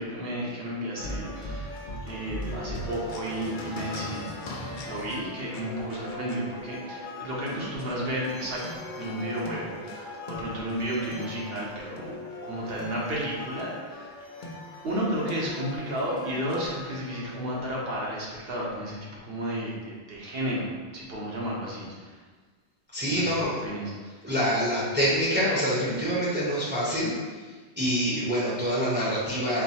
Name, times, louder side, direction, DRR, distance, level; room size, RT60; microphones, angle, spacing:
voice 1, 0.0-1.8 2.0-12.2 12.4-14.2 14.8-22.2 23.1-23.3 23.6-24.2, right 1 dB, 60° right, -5 dB, 1.2 m, -33 dB
sound 1, 1.0-17.6, left 1 dB, 55° left, 0.7 m, -39 dB
voice 2, 22.9-23.6 24.2-27.1 27.8-29.6, equal, 10° right, -8 dB, 0.8 m, -26 dB
4.6 x 2.2 x 4.2 m, 1.4 s
omnidirectional pair, 1.1 m